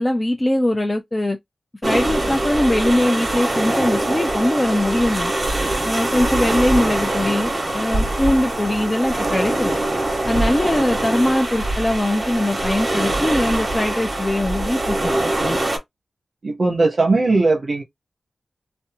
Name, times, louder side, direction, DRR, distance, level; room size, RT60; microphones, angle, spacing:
voice 1, 0.0-1.4 1.8-5.3 5.8-9.7 10.2-15.6, left 1 dB, 25° left, 0.4 m, -21 dB
sound 1, 1.8-15.8, right 1 dB, 30° right, 1.2 m, -23 dB
voice 2, 16.4-17.8, right 3 dB, 60° right, 0.7 m, -18 dB
2.6 x 2.1 x 2.6 m
cardioid pair, 60°, 0 cm